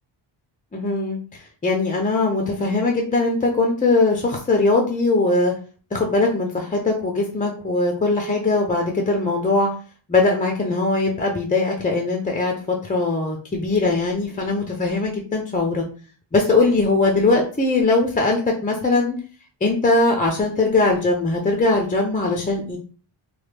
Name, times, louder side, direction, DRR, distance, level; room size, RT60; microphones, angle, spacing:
voice 1, 0.7-1.2 1.6-5.5 5.9-9.7 10.1-15.8 16.3-19.2 19.6-22.8, left 3 dB, 20° left, 1 dB, 0.3 m, -20 dB
3.1 x 2.2 x 3.2 m, 0.39 s
wide cardioid pair, 155°, 49 cm